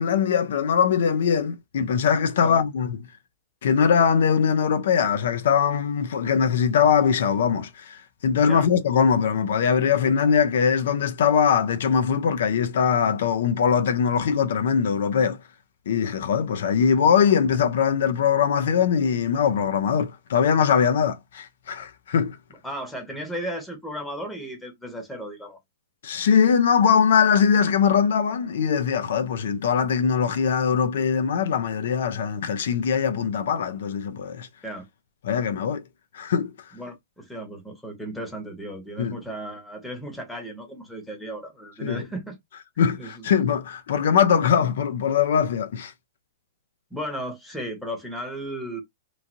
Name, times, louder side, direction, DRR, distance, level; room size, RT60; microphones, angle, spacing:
voice 1, 0.0-3.0 3.6-15.4 15.9-22.4 26.0-34.5 35.2-35.8 36.1-36.5 39.0-39.2 41.8-42.0 42.8-45.9, left 7 dB, 65° left, 0.4 m, -21 dB
voice 2, 22.6-25.6 34.6-34.9 36.7-42.4 43.0-43.3 46.9-48.8, right 1 dB, 5° left, 0.8 m, -35 dB
3.0 x 2.5 x 2.5 m
hypercardioid pair, 165°, 0 cm